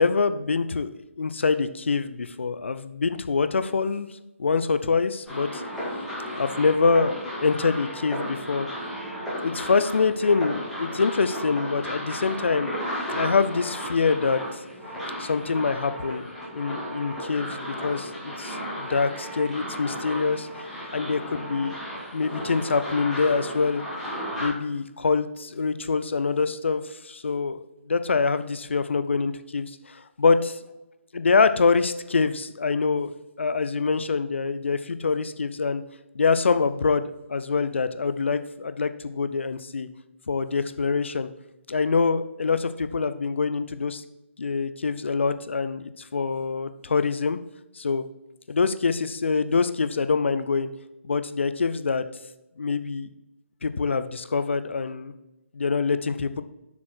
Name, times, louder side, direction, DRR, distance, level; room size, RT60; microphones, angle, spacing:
voice 1, 0.0-4.1 4.4-5.6 6.4-8.7 9.4-12.8 13.1-14.6 15.2-16.3 16.5-20.5 20.9-21.8 22.1-23.8 24.4-30.6 31.1-35.8 36.1-39.9 40.3-41.3 41.7-44.0 44.4-47.4 47.8-48.0 48.5-50.7 51.0-52.0 52.6-53.1 53.6-55.1 55.5-56.4, left 4 dB, 60° left, 12 dB, 0.6 m, -25 dB
sound 1, 5.3-24.5, equal, ahead, 2.3 m, -34 dB
7.2 x 6.3 x 4.4 m, 0.96 s
figure-of-eight pair, 145°, 7 cm